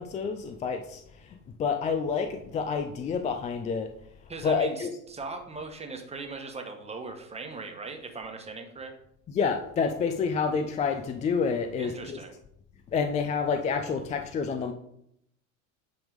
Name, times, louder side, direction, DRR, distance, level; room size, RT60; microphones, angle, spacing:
voice 1, 0.0-3.9 4.4-4.9 9.3-12.2 12.9-14.7, left 5 dB, 20° left, 7 dB, 0.3 m, -28 dB
voice 2, 4.3-8.9 11.8-12.3, right 3 dB, 15° right, 4 dB, 1.2 m, -39 dB
9.2 x 3.6 x 5.1 m, 0.74 s
supercardioid pair, 110°, 43 cm